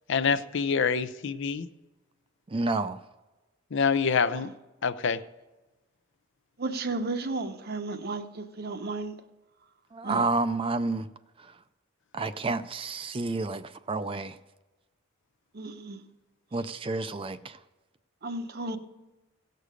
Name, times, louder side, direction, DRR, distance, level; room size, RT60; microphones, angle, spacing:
voice 1, 0.1-1.7 3.7-4.5 4.8-5.2, left 5 dB, 60° left, 0.5 m, -26 dB
voice 2, 2.5-3.0 9.9-11.1 11.4-11.5 12.1-14.4 16.5-17.6, right 3 dB, 25° right, 0.4 m, -30 dB
voice 3, 6.6-9.1 10.0-10.3 15.5-16.0 16.6-16.7 18.2-18.8, right 3 dB, 50° right, 0.8 m, -34 dB
17.0 x 6.6 x 5.0 m
head